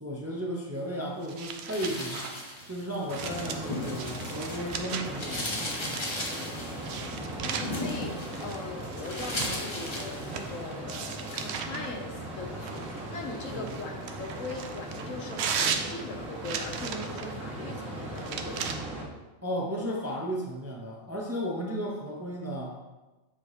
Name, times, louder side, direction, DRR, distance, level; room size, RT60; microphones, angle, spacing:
voice 1, 0.0-2.3 2.7-5.6 13.5-13.7 19.4-22.8, equal, 15° right, -2 dB, 0.6 m, -34 dB
sound 1, 1.2-5.3 5.7-6.3 6.8-10.5 10.9-11.9 12.6-17.3 18.1-18.7, right 6 dB, 65° right, 0.7 m, -37 dB
sound 2, 1.6-4.7 5.0-10.7 11.1-11.5, left 1 dB, 25° left, 0.8 m, -37 dB
sound 3, 3.1-19.0, right 1 dB, 85° right, 1.7 m, -39 dB
voice 2, 7.0-18.8, left 3 dB, 75° left, 3 dB, 1.1 m, -40 dB
7.4 x 2.9 x 4.8 m, 1.1 s
omnidirectional pair, 1.4 m